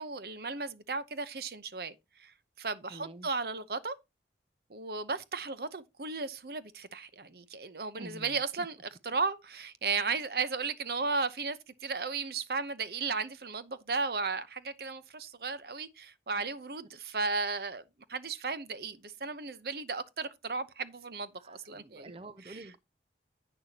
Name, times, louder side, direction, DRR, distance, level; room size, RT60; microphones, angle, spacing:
voice 1, 0.0-4.0 4.7-8.8 9.0-17.8 18.1-22.1 22.5-22.7, right 4 dB, 60° right, 0.8 m, -35 dB
voice 2, 2.9-3.3 8.0-8.7 21.4-22.8, right 1 dB, 30° right, 0.5 m, -48 dB
10.5 x 8.8 x 2.8 m
head